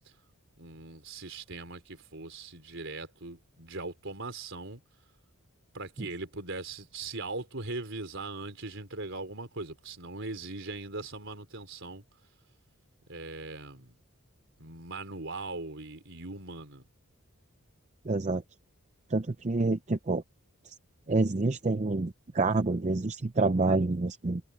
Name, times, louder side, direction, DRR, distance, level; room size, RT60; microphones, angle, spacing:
voice 1, 0.6-4.8 5.7-12.0 13.1-14.0 14.6-16.8, right 3 dB, 60° right, 4.5 m, -40 dB
voice 2, 18.1-18.4 19.1-20.2 20.7-20.8 21.1-24.4, right 3 dB, 30° right, 0.6 m, -27 dB
head